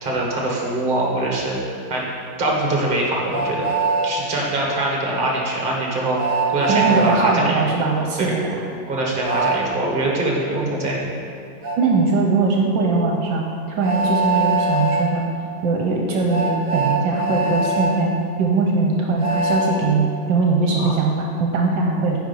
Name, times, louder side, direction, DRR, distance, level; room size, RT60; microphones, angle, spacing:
voice 1, 0.0-1.6 1.9-2.0 2.4-3.6 4.0-6.2 6.5-7.6 8.2-8.4 8.9-11.1 20.8-20.9, right 1 dB, 30° right, -2 dB, 1.4 m, -23 dB
Train, 3.3-4.1 6.2-7.2 9.2-9.6 11.6-11.8 13.8-15.1 16.3-17.9 19.2-19.7, right 3 dB, 50° right, 0.6 m, -22 dB
voice 2, 6.7-8.6 11.8-13.4 13.8-15.2 15.6-18.1 18.4-22.2, right 3 dB, 75° right, 0 dB, 1.4 m, -20 dB
9.8 x 4.5 x 5.4 m, 2.4 s
omnidirectional pair, 2.2 m